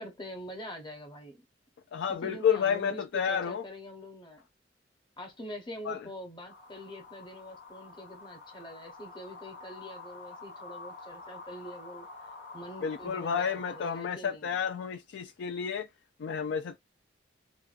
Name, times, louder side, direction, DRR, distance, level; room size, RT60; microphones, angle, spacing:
voice 1, 0.0-1.4 2.1-4.4 5.2-12.1 12.5-14.5, equal, 25° left, 0.9 m, -44 dB
voice 2, 1.9-3.6 5.9-6.0 12.8-15.9 16.2-16.8, left 7 dB, 70° left, 0.3 m, -30 dB
sound 1, 6.5-14.0, left 3 dB, 90° left, 1.0 m, -48 dB
2.5 x 2.2 x 2.4 m
head